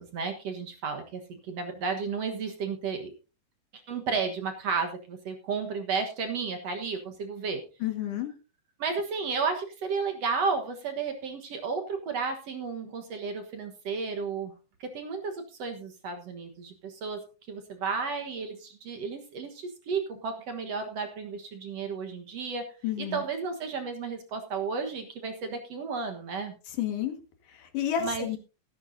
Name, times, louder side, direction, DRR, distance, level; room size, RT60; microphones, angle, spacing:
voice 1, 0.0-3.1 3.7-7.6 8.8-14.5 14.8-17.2 17.5-22.7 23.0-26.5 28.0-28.3, right 5 dB, 55° right, 5 dB, 2.2 m, -33 dB
voice 2, 7.8-8.3 22.8-23.2 26.8-27.1 27.5-28.4, left 10 dB, 70° left, 5 dB, 3.3 m, -30 dB
14.0 x 13.5 x 2.7 m, 0.33 s
omnidirectional pair, 3.9 m